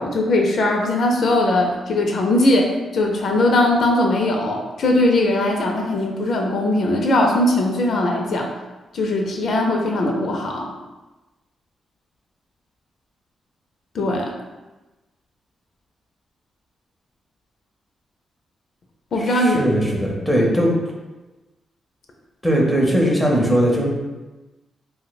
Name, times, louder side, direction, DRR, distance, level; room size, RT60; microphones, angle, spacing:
voice 1, 0.0-8.5 8.9-10.7 13.9-14.3 19.1-19.6, left 1 dB, 60° left, 1 dB, 0.4 m, -20 dB
voice 2, 19.2-20.7 22.4-23.9, equal, ahead, -2 dB, 0.6 m, -19 dB
2.6 x 2.1 x 4.0 m, 1.1 s
cardioid pair, 115°, 0 cm